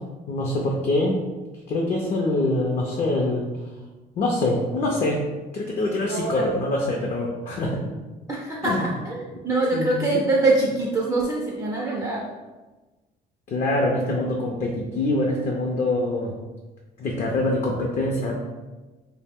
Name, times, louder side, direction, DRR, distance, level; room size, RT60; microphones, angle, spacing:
voice 1, 0.3-1.2 1.7-3.5 4.2-5.2 5.5-7.8 8.6-8.9 9.7-10.0 13.5-16.3 17.0-18.4, left 2 dB, 40° left, -1 dB, 0.4 m, -24 dB
voice 2, 6.1-6.5 7.6-7.7 8.3-9.1 9.4-12.2, right 2 dB, 20° right, -3 dB, 0.4 m, -24 dB
2.4 x 2.0 x 3.4 m, 1.2 s
cardioid pair, 110°, 17 cm